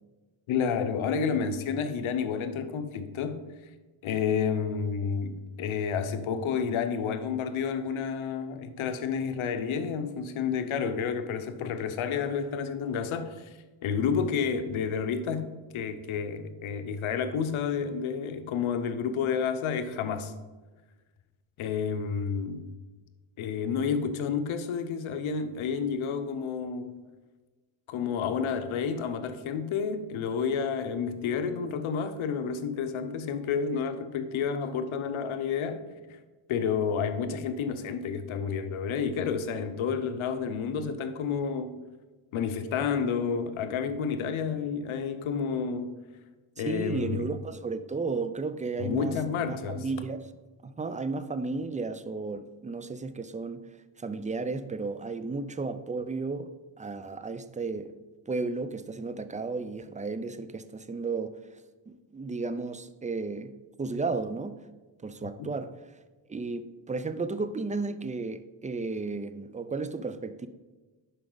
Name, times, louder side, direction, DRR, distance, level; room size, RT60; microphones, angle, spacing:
voice 1, 0.5-3.4 4.0-13.5 13.8-15.5 15.7-20.3 21.6-22.7 23.4-27.0 27.9-35.8 36.1-36.2 36.5-41.8 42.3-45.9 46.6-47.3 48.8-49.8 65.4-65.5, left 6 dB, 85° left, 0.8 m, -30 dB
voice 2, 46.6-49.2 49.5-50.2 50.6-53.6 54.0-56.5 56.8-57.9 58.3-61.4 61.9-63.5 63.8-64.6 65.0-65.7 66.3-70.5, right 3 dB, 15° right, 0.4 m, -33 dB
11.0 x 4.8 x 3.9 m
cardioid pair, 95°, 47 cm